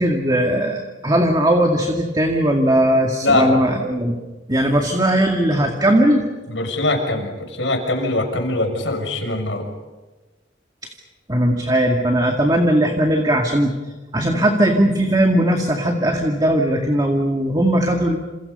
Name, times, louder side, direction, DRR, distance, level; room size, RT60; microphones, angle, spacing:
voice 1, 0.0-4.2 4.5-6.3 11.3-13.7 14.1-18.2, right 1 dB, 20° right, 2 dB, 2.2 m, -18 dB
voice 2, 3.2-3.6 6.5-9.7, left 2 dB, 80° left, 5 dB, 6.3 m, -22 dB
29.0 x 28.5 x 5.5 m, 1.2 s
head